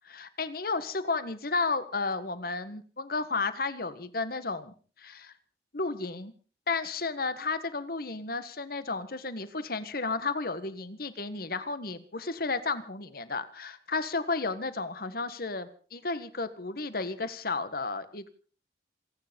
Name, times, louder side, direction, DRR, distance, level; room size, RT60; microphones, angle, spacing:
voice 1, 0.1-5.3 5.7-6.3 6.7-18.3, left 3 dB, 55° left, 13 dB, 1.5 m, -33 dB
27.5 x 9.7 x 5.3 m, 0.41 s
head